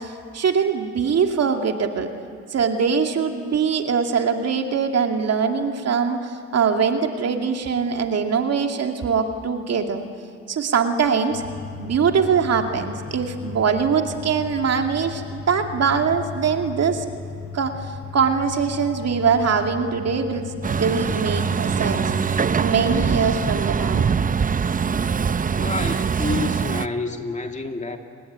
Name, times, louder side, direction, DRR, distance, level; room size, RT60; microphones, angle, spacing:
voice 1, 0.0-2.1 2.5-10.1 10.5-11.4 11.8-17.0 17.5-20.5 20.8-22.1 22.6-24.1, right 6 dB, 55° right, 4 dB, 2.5 m, -22 dB
sound 1, 11.3-22.5, left 5 dB, 90° left, 5.5 m, -36 dB
Truck, 20.6-26.9, right 6 dB, 25° right, 0.7 m, -23 dB
voice 2, 25.6-28.0, left 3 dB, 25° left, 4 dB, 2.3 m, -28 dB
29.5 x 21.0 x 9.5 m, 2.2 s
cardioid pair, 90°, 30 cm